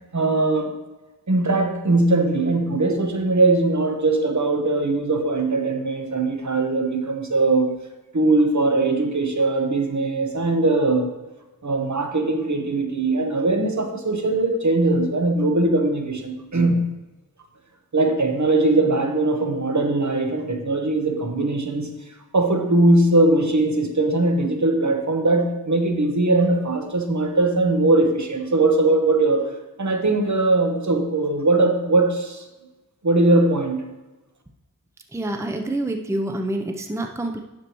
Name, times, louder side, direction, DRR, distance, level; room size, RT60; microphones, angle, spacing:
voice 1, 0.1-0.7 1.3-7.7 8.1-11.1 11.6-16.8 17.9-21.9 22.3-29.5 29.8-32.4 33.0-33.8, right 2 dB, 50° right, 4 dB, 1.2 m, -20 dB
voice 2, 35.1-37.4, right 1 dB, 10° right, 4 dB, 0.6 m, -27 dB
10.0 x 6.8 x 3.0 m, 1.1 s
wide cardioid pair, 55°, 36 cm